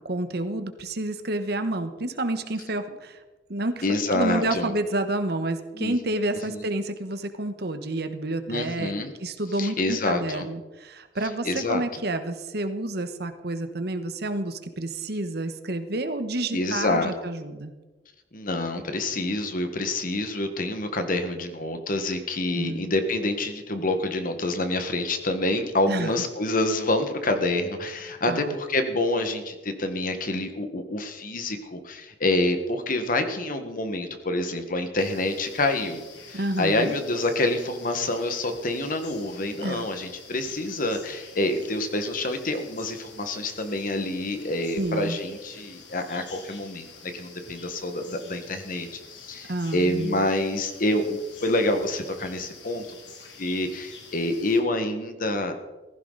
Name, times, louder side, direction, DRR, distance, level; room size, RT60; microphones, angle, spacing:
voice 1, 0.1-3.2 3.5-3.8 4.1-8.9 9.2-17.7 22.5-22.9 25.9-26.1 28.3-28.6 36.3-36.9 39.6-39.9 44.7-45.2 49.5-50.3, right 2 dB, 60° right, 8 dB, 1.3 m, -29 dB
voice 2, 3.8-4.7 5.7-5.9 6.5-6.6 8.5-9.1 9.6-10.5 11.4-12.0 16.5-17.1 18.3-36.0 36.3-46.9 47.1-52.9 53.4-55.5, left 2 dB, 50° left, 7 dB, 1.6 m, -27 dB
sound 1, 35.0-54.6, left 4 dB, 80° left, 2.7 m, -47 dB
15.5 x 15.5 x 4.1 m, 1.2 s
head